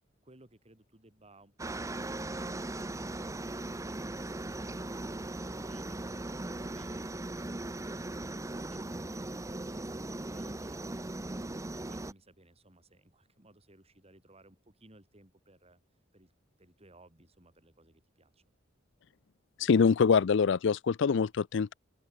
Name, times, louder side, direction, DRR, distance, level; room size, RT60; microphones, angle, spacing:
voice 1, 0.2-2.7 3.0-15.8 16.1-16.3 16.6-18.4, right 2 dB, 30° right, 7.1 m, -60 dB
Aircraft, 1.6-12.1, right 2 dB, 15° right, 0.7 m, -38 dB
voice 2, 19.6-21.7, left 5 dB, 65° left, 0.4 m, -25 dB
open air
head